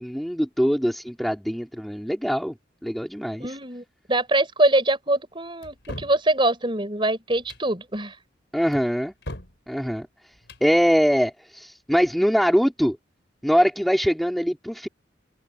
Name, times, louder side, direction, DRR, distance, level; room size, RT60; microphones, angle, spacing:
voice 1, 0.0-2.5 2.8-3.5 8.5-9.1 9.7-10.1 10.6-13.0 13.4-14.9, equal, ahead, 3.1 m, -22 dB
voice 2, 3.4-8.2, right 1 dB, 25° right, 5.8 m, -23 dB
sound 1, 5.6-6.2 7.3-7.7 8.7-9.6 10.3-10.7, left 1 dB, 65° left, 4.7 m, -39 dB
head